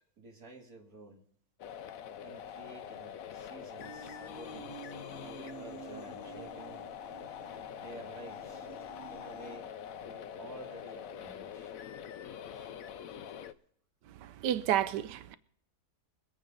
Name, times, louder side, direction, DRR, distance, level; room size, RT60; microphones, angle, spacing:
voice 1, 0.2-1.2 2.2-4.7 5.2-6.8 7.8-11.7 12.5-13.3, right 3 dB, 65° right, 2.8 m, -52 dB
sound 1, 1.6-13.5, left 9 dB, 65° left, 1.0 m, -45 dB
sound 2, 3.8-9.6, right 3 dB, 25° left, 5.9 m, -50 dB
voice 2, 14.2-15.3, right 11 dB, 90° right, 1.3 m, -31 dB
22.5 x 8.7 x 3.9 m
omnidirectional pair, 1.8 m